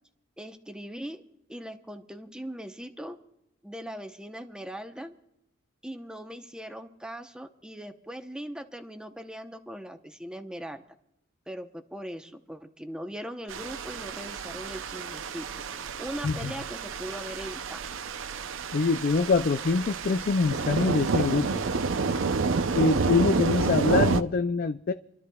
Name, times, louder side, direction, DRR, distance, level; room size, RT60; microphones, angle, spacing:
voice 1, 0.4-1.2 1.5-3.2 3.6-5.2 5.8-10.8 11.5-15.5 16.0-17.8, equal, 5° right, 0.8 m, -40 dB
sound 1, 13.5-24.2, right 4 dB, 80° right, 0.6 m, -29 dB
voice 2, 18.7-21.6 22.8-24.9, left 4 dB, 50° left, 0.4 m, -24 dB
28.5 x 13.0 x 2.3 m
head